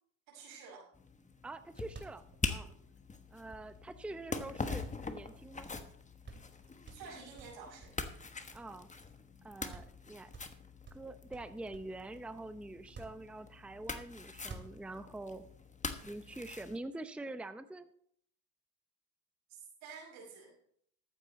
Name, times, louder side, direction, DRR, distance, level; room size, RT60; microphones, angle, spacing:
voice 1, 0.3-0.9 2.5-2.7 6.9-7.9 19.5-20.5, right 5 dB, 85° right, -1 dB, 5.6 m, -50 dB
sound 1, 0.9-16.8, left 4 dB, 20° left, 1.3 m, -44 dB
voice 2, 1.4-2.7 3.3-5.7 8.5-8.9 9.4-10.3 10.9-15.5 16.0-17.9, right 2 dB, 5° right, 11 dB, 0.6 m, -45 dB
sound 2, 1.9-4.0 4.6-5.6 5.9-6.0 6.2-6.6 6.9-9.0 9.3-9.4 9.7-10.0 10.3-12.0 12.8-13.8 14.3-15.2, right 3 dB, 30° right, 2.7 m, -52 dB
13.5 x 9.1 x 4.1 m, 0.65 s
supercardioid pair, 85°, 37 cm